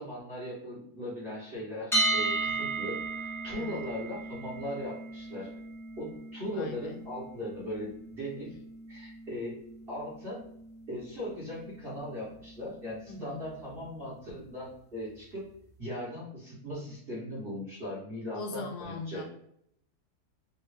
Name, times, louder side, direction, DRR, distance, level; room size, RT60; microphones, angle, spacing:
voice 1, 0.0-5.5 6.0-8.5 8.9-9.6 9.9-10.5 10.9-15.5 15.8-19.2, equal, 40° right, -9 dB, 1.4 m, -39 dB
sound 1, 1.9-13.8, right 2 dB, ahead, 0.6 m, -36 dB
voice 2, 3.5-3.8 6.5-7.0 13.0-13.5 18.3-19.2, left 3 dB, 90° left, 3 dB, 1.3 m, -40 dB
3.6 x 2.8 x 3.3 m, 0.71 s
omnidirectional pair, 1.7 m